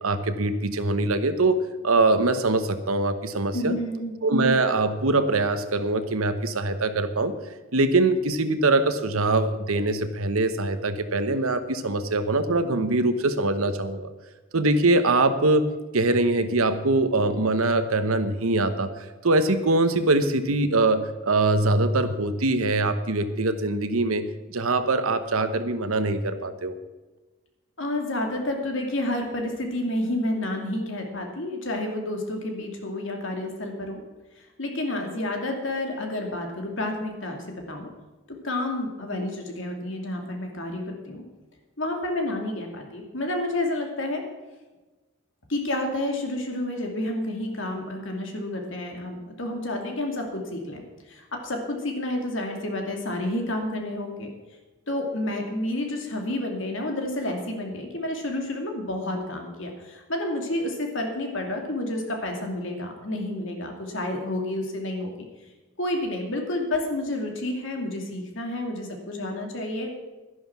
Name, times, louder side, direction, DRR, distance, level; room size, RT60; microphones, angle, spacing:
voice 1, 0.0-3.8 4.2-7.3 7.7-14.1 14.5-18.9 19.2-26.8, right 2 dB, 85° right, 10 dB, 1.1 m, -23 dB
voice 2, 3.5-4.2 27.8-34.0 34.4-37.9 38.3-41.2 41.8-44.3 45.5-50.8 51.1-54.3 54.9-65.3 65.8-69.9, left 1 dB, 65° left, 2 dB, 2.5 m, -30 dB
11.5 x 11.0 x 6.0 m, 1.2 s
head